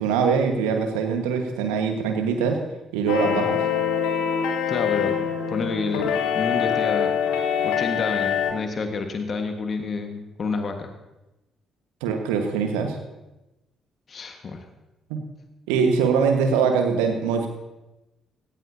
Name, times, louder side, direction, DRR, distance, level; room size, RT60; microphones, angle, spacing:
voice 1, 0.0-2.6 2.9-3.6 12.0-13.0 15.1-15.2 15.7-17.5, right 6 dB, 70° right, 5 dB, 1.5 m, -22 dB
sound 1, 3.1-8.5, left 8 dB, 70° left, 1.4 m, -24 dB
voice 2, 4.7-5.2 5.5-7.1 7.6-10.9 14.1-14.6, left 4 dB, 45° left, 5 dB, 1.6 m, -29 dB
18.5 x 17.0 x 2.8 m, 1.0 s
figure-of-eight pair, 45°, 0 cm